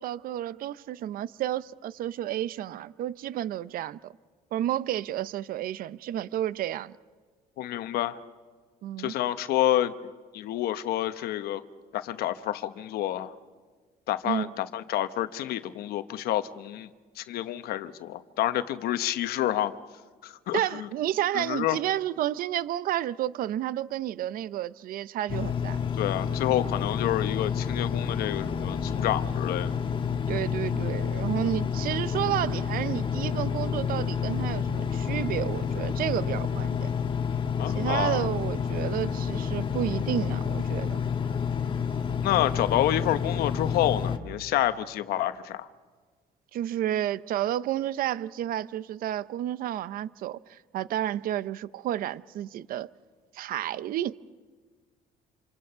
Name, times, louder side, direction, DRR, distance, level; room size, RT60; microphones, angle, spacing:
voice 1, 0.0-4.2 4.5-7.0 8.8-9.1 14.3-14.6 20.5-25.8 30.3-36.9 37.7-41.0 46.5-52.9 53.3-54.2, right 12 dB, 70° right, 0.6 m, -31 dB
voice 2, 7.6-8.2 9.0-9.9 10.3-11.6 11.9-13.3 14.1-16.9 17.2-19.7 20.2-20.9 21.3-21.8 26.0-29.8 37.6-38.3 42.2-45.7, left 13 dB, 85° left, 1.0 m, -28 dB
Engine, 25.3-44.2, left 6 dB, 30° left, 1.5 m, -29 dB
27.5 x 27.5 x 5.7 m
cardioid pair, 130°, 16 cm